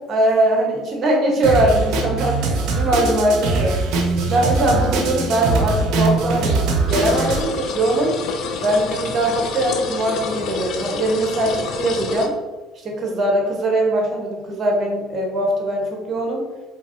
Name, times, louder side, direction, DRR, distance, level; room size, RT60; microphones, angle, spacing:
voice 1, 0.1-3.8 4.3-8.2 8.6-12.4 12.8-16.4, right 1 dB, 45° right, 0 dB, 1.4 m, -21 dB
Drum kit, 1.4-7.4, right 3 dB, 65° right, 0.8 m, -21 dB
sound 1, 6.9-12.3, left 4 dB, 60° left, 0.5 m, -28 dB
4.5 x 3.5 x 2.8 m, 1.3 s
hypercardioid pair, 70°, 0 cm